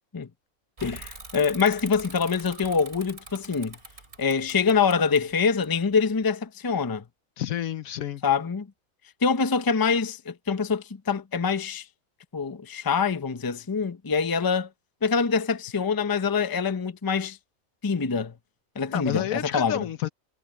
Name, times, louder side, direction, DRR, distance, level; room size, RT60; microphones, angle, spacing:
voice 1, 0.8-3.8 4.2-7.0 8.2-8.7 9.2-11.9 12.3-14.7 15.0-17.4 17.8-18.3 18.8-19.9, left 5 dB, 20° left, 0.6 m, -25 dB
Bicycle / Mechanisms, 0.8-6.2, right 2 dB, 50° right, 3.9 m, -44 dB
voice 2, 7.4-8.2 18.9-20.1, left 11 dB, 80° left, 1.3 m, -29 dB
omnidirectional pair, 1.4 m